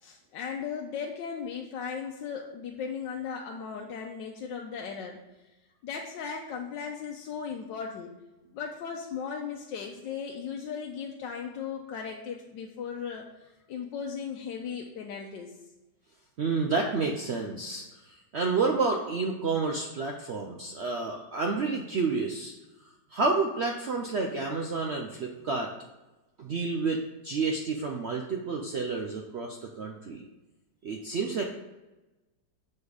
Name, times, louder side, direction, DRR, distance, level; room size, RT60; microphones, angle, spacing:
voice 1, 0.0-5.2 5.8-8.1 8.5-13.3 13.7-15.5, left 6 dB, 90° left, 0 dB, 1.3 m, -37 dB
voice 2, 16.4-22.5 23.1-25.7 26.4-30.2 30.8-31.4, right 4 dB, 80° right, 2 dB, 0.6 m, -30 dB
7.1 x 4.3 x 4.9 m, 1.1 s
omnidirectional pair, 1.9 m